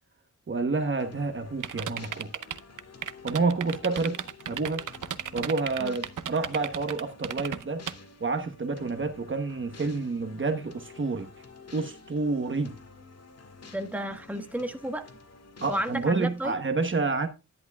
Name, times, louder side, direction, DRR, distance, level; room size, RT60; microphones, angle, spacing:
voice 1, 0.5-2.4 3.2-4.2 4.5-4.8 5.3-7.8 8.2-11.3 11.7-12.7 15.6-17.3, right 3 dB, 40° right, 1.1 m, -29 dB
sound 1, 1.0-16.5, left 4 dB, 55° left, 1.8 m, -50 dB
sound 2, 1.6-7.9, right 9 dB, 85° right, 0.7 m, -34 dB
voice 2, 13.7-15.1 15.7-16.6, right 1 dB, 5° right, 1.3 m, -32 dB
11.0 x 10.5 x 2.3 m
wide cardioid pair, 105°, 31 cm